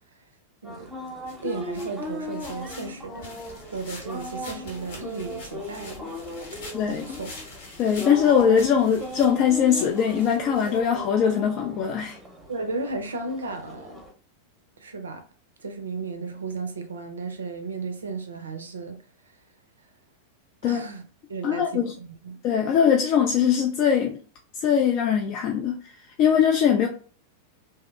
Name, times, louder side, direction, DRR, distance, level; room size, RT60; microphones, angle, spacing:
sound 1, 0.6-14.1, left 1 dB, 10° right, 0.7 m, -38 dB
sound 2, 1.3-11.3, left 3 dB, 55° left, 0.8 m, -45 dB
voice 1, 1.4-3.4 3.7-6.2 6.8-7.3 12.5-14.0 14.8-15.2 15.6-19.0 20.6-21.0 21.3-22.4, right 3 dB, 70° right, 0.4 m, -34 dB
voice 2, 6.7-7.2 7.8-12.2 20.6-20.8 21.4-21.9 22.4-24.2 24.6-25.8 26.2-26.9, left 8 dB, 40° left, 0.3 m, -21 dB
2.7 x 2.0 x 2.2 m
figure-of-eight pair, 90°, 0 cm